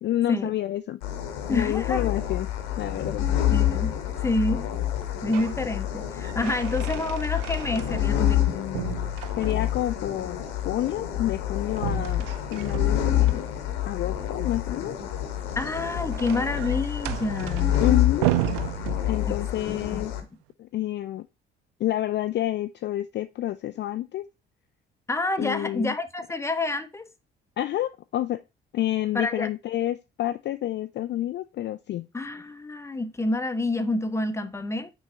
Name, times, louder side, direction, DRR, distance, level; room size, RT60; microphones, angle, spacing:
voice 1, 0.0-1.0 1.5-2.5 2.8-3.3 7.9-9.0 9.4-13.5 13.8-14.9 17.8-18.3 19.0-20.1 20.6-21.3 21.8-24.3 25.4-25.9 27.6-28.4 28.7-32.1, left 13 dB, 40° left, 0.4 m, -29 dB
sound 1, 1.0-20.2, left 11 dB, 70° left, 1.1 m, -27 dB
voice 2, 1.5-2.1 3.5-3.9 4.2-4.7 5.2-8.5 15.6-17.9 19.3-19.4 19.7-20.0 25.1-27.1 29.1-29.5 32.1-34.9, left 2 dB, 10° left, 0.8 m, -28 dB
sound 2, 5.0-5.6 6.0-8.4 8.7-9.9 11.7-13.4 15.4-19.5, right 17 dB, 65° right, 0.5 m, -33 dB
5.6 x 4.7 x 3.6 m
figure-of-eight pair, 45°, 29 cm